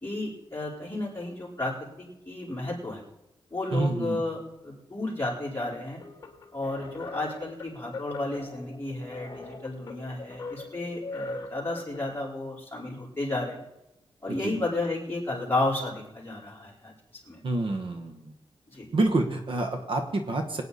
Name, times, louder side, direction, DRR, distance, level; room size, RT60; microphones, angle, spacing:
voice 1, 0.0-3.0 3.5-6.0 6.5-13.6 14.2-16.9 17.2-17.4 18.7-18.9, left 2 dB, 20° left, -5 dB, 4.3 m, -32 dB
voice 2, 3.7-4.2 14.3-14.6 17.4-18.2 18.9-20.6, right 2 dB, 60° right, 5 dB, 1.3 m, -27 dB
sound 1, 6.0-12.2, left 2 dB, 35° left, 2.3 m, -41 dB
23.0 x 9.2 x 4.1 m, 0.92 s
wide cardioid pair, 175°, 10 cm